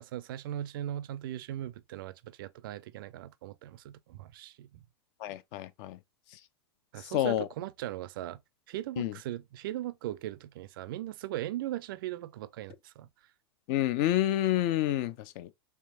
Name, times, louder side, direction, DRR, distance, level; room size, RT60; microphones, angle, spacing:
voice 1, 0.0-4.7 6.9-8.4 8.7-13.1, right 13 dB, 55° right, 0.4 m, -39 dB
voice 2, 5.2-6.0 6.3-6.4 7.0-7.5 9.0-9.2 13.7-15.5, left 13 dB, 45° left, 0.4 m, -29 dB
4.5 x 3.3 x 2.4 m
figure-of-eight pair, 95°, 14 cm